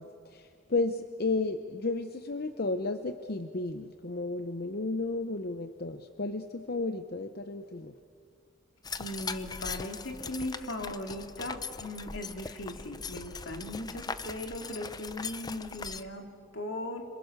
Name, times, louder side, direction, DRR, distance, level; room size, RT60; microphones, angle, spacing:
voice 1, 0.0-7.9, left 3 dB, 50° left, 8 dB, 0.8 m, -33 dB
sound 1, 8.8-16.0, left 4 dB, 20° left, 0.6 m, -40 dB
voice 2, 9.0-17.0, left 1 dB, 75° left, 3 dB, 2.8 m, -38 dB
27.0 x 26.5 x 6.6 m, 2.4 s
head